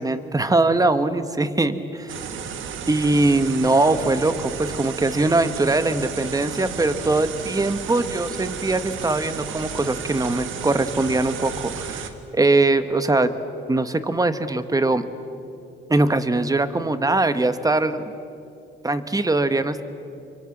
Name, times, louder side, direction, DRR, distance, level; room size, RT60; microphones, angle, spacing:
voice 1, 0.0-2.2 2.9-13.3 13.7-15.0 15.9-18.0 18.8-19.8, right 2 dB, 20° right, 11 dB, 1.3 m, -21 dB
sound 1, 2.1-12.1, right 7 dB, 80° right, 1.7 m, -33 dB
26.5 x 23.5 x 7.4 m, 2.7 s
cardioid pair, 90°, 20 cm